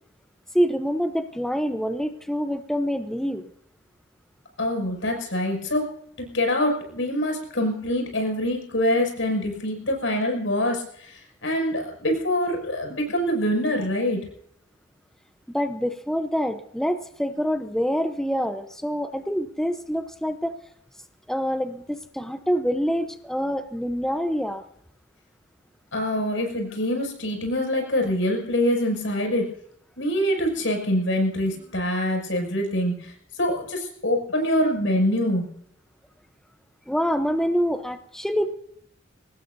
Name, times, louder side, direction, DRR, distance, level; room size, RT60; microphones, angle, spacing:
voice 1, 0.5-3.5 15.5-20.6 21.3-24.6 36.9-38.6, equal, 5° left, 8 dB, 0.8 m, -26 dB
voice 2, 4.6-5.9 6.2-14.2 25.9-29.5 30.0-33.1 33.4-35.5, left 1 dB, 85° left, 2 dB, 6.5 m, -25 dB
24.0 x 19.0 x 2.7 m, 0.70 s
head